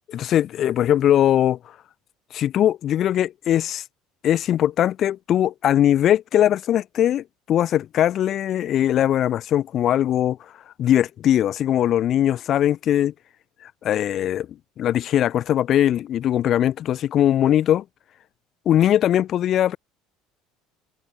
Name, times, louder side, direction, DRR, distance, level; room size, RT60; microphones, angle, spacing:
voice 1, 0.1-1.6 2.3-3.8 4.2-10.4 10.8-13.1 13.6-14.5 14.8-17.8 18.7-19.8, left 11 dB, 45° left, 0.4 m, -20 dB
supercardioid pair, 120°, 0 cm